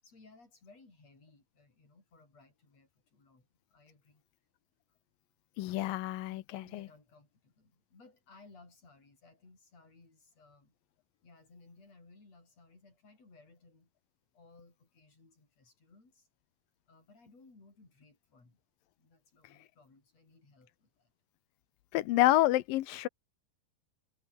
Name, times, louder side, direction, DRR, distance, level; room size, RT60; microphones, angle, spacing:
voice 1, 0.0-4.2 6.3-10.8 11.2-13.9 14.3-16.3 16.9-18.6 19.0-21.1, left 3 dB, 50° left, 9.3 m, -60 dB
voice 2, 5.6-6.9 21.9-23.1, left 16 dB, 85° left, 2.7 m, -28 dB
omnidirectional pair, 3.9 m